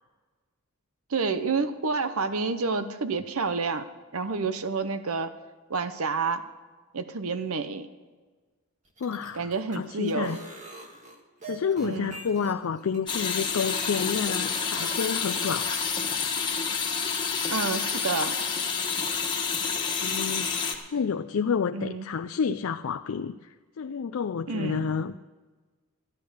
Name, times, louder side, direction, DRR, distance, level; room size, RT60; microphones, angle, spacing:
voice 1, 1.1-3.8 4.1-5.3 5.7-6.4 6.9-7.9 9.3-10.3 11.8-12.2 17.5-18.3 21.7-22.1 24.5-24.9, right 4 dB, 70° right, 0.8 m, -29 dB
sound 1, 8.9-14.9, right 2 dB, 35° right, 1.8 m, -44 dB
voice 2, 9.0-10.4 11.5-15.9 20.0-25.1, left 6 dB, 65° left, 0.4 m, -30 dB
sound 2, 13.1-20.8, left 6 dB, 20° left, 1.5 m, -29 dB
14.0 x 10.5 x 6.4 m
head